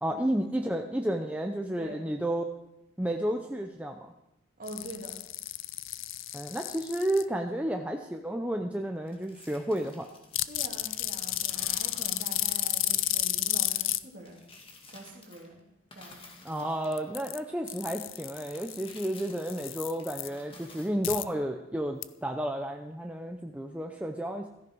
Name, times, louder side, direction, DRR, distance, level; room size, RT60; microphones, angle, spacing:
voice 1, 0.0-2.5 3.0-4.1 6.3-10.1 16.4-24.5, right 1 dB, 5° right, 3 dB, 0.6 m, -32 dB
voice 2, 4.6-5.2 10.5-14.4 14.9-15.7 15.9-16.2, right 1 dB, 40° right, 1 dB, 2.7 m, -44 dB
sound 1, 4.7-7.2 10.3-14.0 16.8-17.4 17.7-20.3 21.0-21.2 22.0-22.1, left 15 dB, 65° left, 0.6 m, -32 dB
sound 2, 9.1-11.1 11.5-13.5 14.2-15.6 15.9-17.5 18.2-20.9, left 3 dB, 25° left, 2.1 m, -53 dB
16.0 x 14.0 x 4.7 m, 0.86 s
head